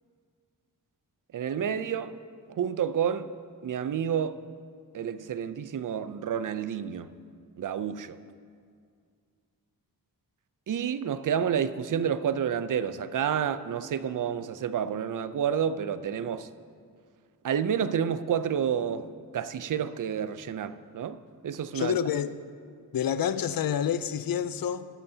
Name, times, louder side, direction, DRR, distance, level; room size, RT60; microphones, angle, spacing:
voice 1, 1.3-2.1 2.6-3.3 3.6-4.4 4.9-7.1 7.6-8.2 10.7-16.5 17.4-19.1 19.3-22.0, right 8 dB, 55° right, 0.5 m, -29 dB
voice 2, 21.7-22.4 22.9-24.9, left 9 dB, 65° left, 0.5 m, -28 dB
17.0 x 11.0 x 2.7 m
wide cardioid pair, 135°, 38 cm